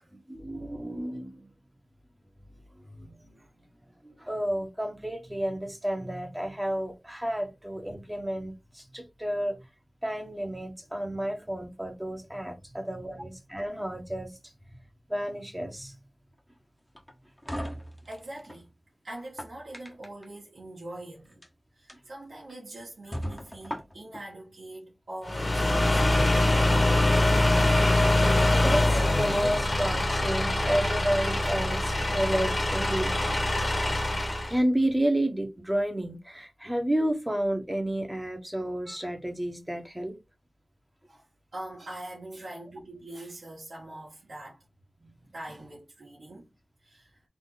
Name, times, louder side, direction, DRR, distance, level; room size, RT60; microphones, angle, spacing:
voice 1, 0.1-1.5 3.0-3.4 4.0-9.6 10.0-14.3 15.1-15.9 28.5-33.4 34.5-40.2, right 1 dB, 10° right, 1.4 m, -31 dB
sound 1, 16.9-18.6 19.2-20.3 21.3-21.5 21.9-22.0 22.5-22.6 23.1-24.2, equal, 15° left, 1.2 m, -38 dB
voice 2, 18.1-18.7 19.0-21.4 21.7-26.1 34.0-34.2 41.1-41.3 41.5-44.6 45.3-46.5 46.8-47.2, right 1 dB, 75° right, 1.7 m, -43 dB
sound 2, 25.2-34.6, left 1 dB, 50° left, 1.4 m, -24 dB
3.9 x 3.0 x 4.0 m
cardioid pair, 50°, 0 cm